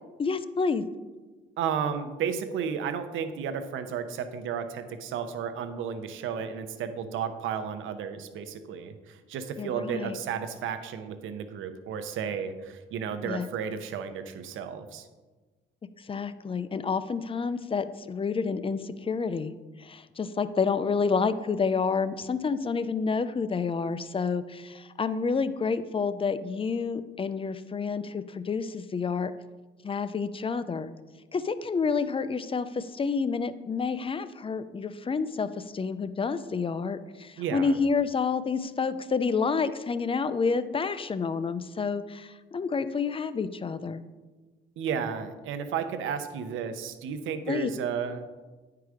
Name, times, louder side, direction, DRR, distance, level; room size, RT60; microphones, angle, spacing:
voice 1, 0.2-0.8 9.6-10.2 13.2-13.5 16.0-19.5 19.8-29.3 29.8-30.9 31.3-44.0 47.5-47.7, left 5 dB, 25° left, 13 dB, 0.5 m, -29 dB
voice 2, 1.6-15.1 37.4-37.7 44.8-48.3, right 7 dB, 80° right, 9 dB, 0.8 m, -33 dB
9.4 x 4.8 x 4.9 m, 1.3 s
cardioid pair, 90°, 20 cm